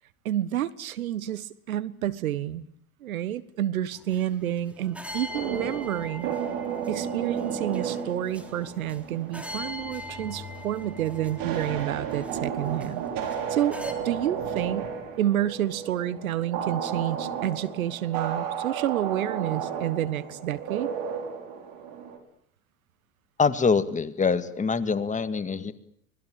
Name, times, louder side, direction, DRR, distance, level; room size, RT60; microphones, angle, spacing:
voice 1, 0.2-2.6 3.0-6.3 6.9-13.0 13.5-13.8 14.0-14.9 15.2-20.9, right 12 dB, 75° right, 16 dB, 1.5 m, -29 dB
sound 1, 3.9-13.9, left 2 dB, 5° right, 3.7 m, -42 dB
sound 2, 5.3-22.2, right 7 dB, 50° right, 6.3 m, -33 dB
voice 2, 23.4-25.7, left 5 dB, 15° left, 11 dB, 2.0 m, -24 dB
25.5 x 20.5 x 8.9 m, 0.67 s
hypercardioid pair, 85°, 42 cm